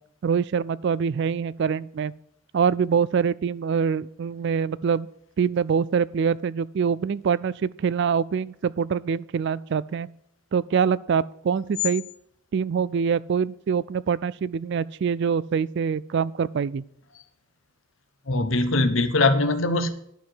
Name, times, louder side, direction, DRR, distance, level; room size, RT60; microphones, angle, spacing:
voice 1, 0.2-2.1 2.5-5.1 5.4-10.1 10.5-12.0 12.5-16.8, right 6 dB, 55° right, 0.3 m, -24 dB
voice 2, 18.3-19.9, left 2 dB, 60° left, 1.1 m, -21 dB
11.5 x 4.7 x 7.7 m
head